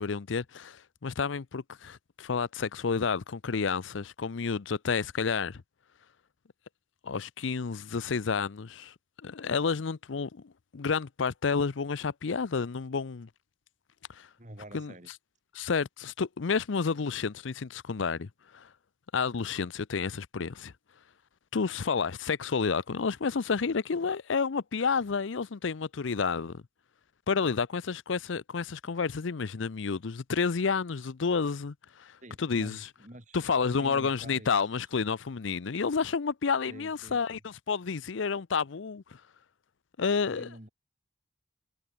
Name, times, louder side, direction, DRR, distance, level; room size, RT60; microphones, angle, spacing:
voice 1, 0.0-5.6 7.0-8.9 9.2-13.3 14.1-14.3 14.7-14.9 15.5-18.7 19.1-20.7 21.5-26.6 27.3-32.8 33.3-39.2 40.0-40.5, left 5 dB, 75° left, 0.6 m, -30 dB
voice 2, 14.4-15.1 32.2-34.6 36.7-37.4 40.2-40.7, right 1 dB, 40° right, 3.3 m, -48 dB
head